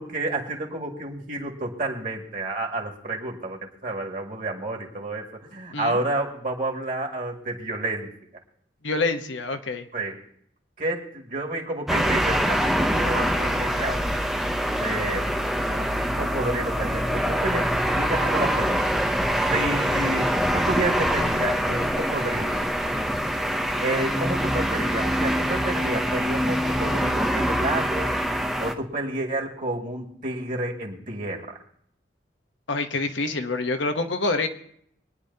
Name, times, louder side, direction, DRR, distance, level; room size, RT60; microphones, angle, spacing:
voice 1, 0.0-5.3 5.5-8.1 9.9-10.2 10.8-14.0 14.8-19.0 19.4-22.7 23.8-28.1 28.6-31.6, right 2 dB, 45° right, 1 dB, 2.0 m, -30 dB
voice 2, 8.8-9.9 32.7-34.5, left 3 dB, 85° left, 6 dB, 1.0 m, -26 dB
sound 1, 11.9-28.7, equal, ahead, 0.6 m, -24 dB
24.0 x 10.0 x 2.8 m, 0.68 s
head